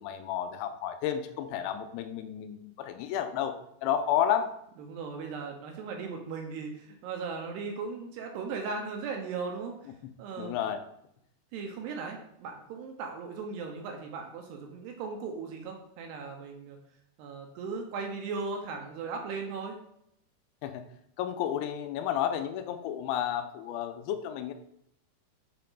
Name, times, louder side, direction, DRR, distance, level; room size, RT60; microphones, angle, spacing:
voice 1, 0.0-3.5 3.8-4.5 10.4-10.8 20.6-20.8 21.2-24.5, left 10 dB, 90° left, 7 dB, 3.0 m, -31 dB
voice 2, 4.8-9.7 10.2-10.6 11.5-16.8 17.2-19.8, right 4 dB, 75° right, 3 dB, 2.6 m, -37 dB
8.1 x 4.4 x 3.9 m, 0.74 s
omnidirectional pair, 5.3 m